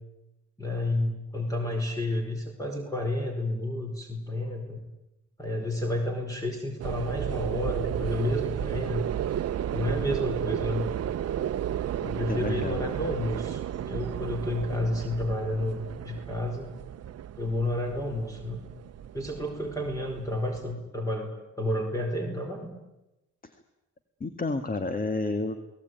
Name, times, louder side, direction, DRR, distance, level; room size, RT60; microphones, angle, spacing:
voice 1, 0.6-4.8 5.4-9.0 9.7-10.9 12.0-16.7 17.4-18.6 19.1-22.7, left 1 dB, 10° left, 3 dB, 4.6 m, -31 dB
sound 1, 6.8-20.7, right 10 dB, 55° right, 0.9 m, -33 dB
voice 2, 12.3-12.9 23.4-23.5 24.2-25.6, left 3 dB, 30° left, 9 dB, 2.0 m, -30 dB
28.5 x 19.0 x 9.4 m, 0.96 s
cardioid pair, 90°, 30 cm